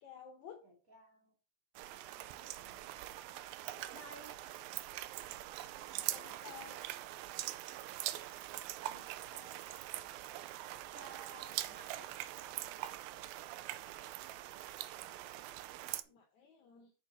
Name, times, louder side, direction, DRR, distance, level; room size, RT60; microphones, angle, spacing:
voice 1, 0.0-0.6 6.1-6.8 16.1-16.9, left 8 dB, 70° left, 5 dB, 1.9 m, -53 dB
voice 2, 0.6-1.3 2.1-2.9 3.7-4.4 5.5-6.4 8.7-9.9 10.9-12.1 15.3-16.1, right 1 dB, 25° right, -1 dB, 2.2 m, -58 dB
sound 1, 1.8-16.0, right 14 dB, 80° right, 2.3 m, -43 dB
8.3 x 7.1 x 4.1 m, 0.35 s
omnidirectional pair, 4.3 m